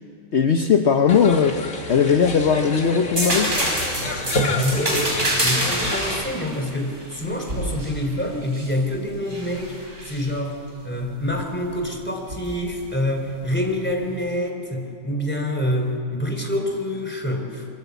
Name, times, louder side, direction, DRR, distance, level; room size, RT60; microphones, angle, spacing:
voice 1, 0.3-1.6 1.9-3.5, left 6 dB, 55° left, 5 dB, 1.2 m, -18 dB
sound 1, 1.1-6.2, left 2 dB, 75° left, 2.4 m, -28 dB
sound 2, 3.1-8.7 9.3-10.2 12.3-12.5, right 1 dB, 60° right, 6.1 m, -26 dB
voice 2, 4.5-5.1 5.4-17.7, left 1 dB, 5° left, 2 dB, 3.5 m, -26 dB
25.5 x 23.0 x 8.3 m, 2.5 s
omnidirectional pair, 1.4 m